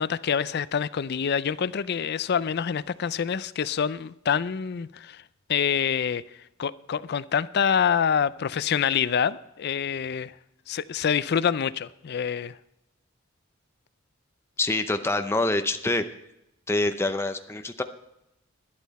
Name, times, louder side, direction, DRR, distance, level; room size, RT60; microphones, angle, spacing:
voice 1, 0.0-5.2 5.5-6.2 6.6-10.3 10.7-12.6, left 7 dB, 50° left, 0.4 m, -26 dB
voice 2, 14.6-16.0 16.7-17.8, left 2 dB, 10° left, 0.7 m, -25 dB
11.5 x 11.5 x 4.2 m
head